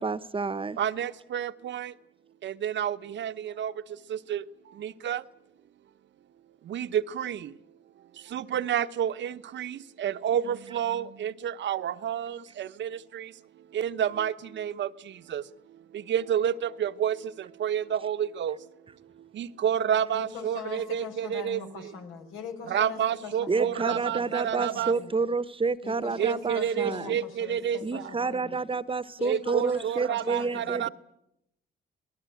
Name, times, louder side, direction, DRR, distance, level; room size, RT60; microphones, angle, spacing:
voice 1, 0.0-0.8 23.5-27.2 27.8-30.9, right 4 dB, 25° right, 1.0 m, -29 dB
voice 2, 0.8-1.9 2.4-5.2 6.6-7.6 8.2-13.3 13.7-15.5 15.9-18.7 19.3-21.6 22.7-24.9 26.2-28.1 29.2-30.9, right 9 dB, 65° right, 1.0 m, -30 dB
voice 3, 20.1-25.1 25.8-28.6 29.2-30.9, left 5 dB, 90° left, 5.1 m, -42 dB
25.5 x 19.0 x 9.2 m
cardioid pair, 90°, 20 cm